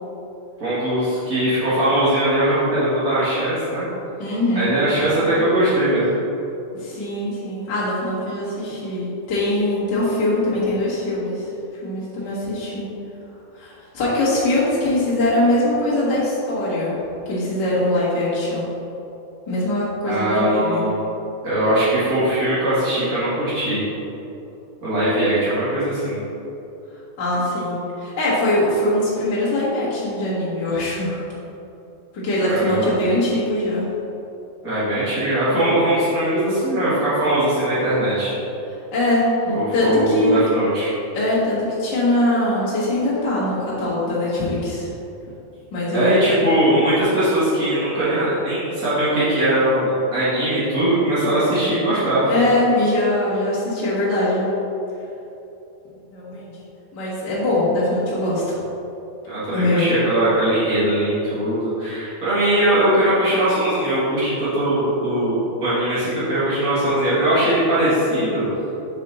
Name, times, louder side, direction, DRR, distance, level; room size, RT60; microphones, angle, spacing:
voice 1, 0.6-3.9 4.5-6.1 20.0-21.0 21.4-23.8 24.8-26.2 32.4-32.9 34.6-38.3 39.5-40.9 45.9-52.4 59.2-68.4, right 1 dB, 70° right, -13 dB, 0.8 m, -20 dB
voice 2, 4.2-4.7 6.7-11.5 11.8-12.8 13.5-16.9 17.2-18.7 19.5-20.8 27.2-31.2 32.1-33.9 38.9-39.2 39.7-40.4 41.1-44.9 45.7-46.2 52.3-54.5 56.1-56.5 56.9-58.6 59.5-59.9, left 1 dB, 65° left, -10 dB, 1.0 m, -22 dB
5.5 x 4.7 x 4.0 m, 2.9 s
omnidirectional pair, 4.3 m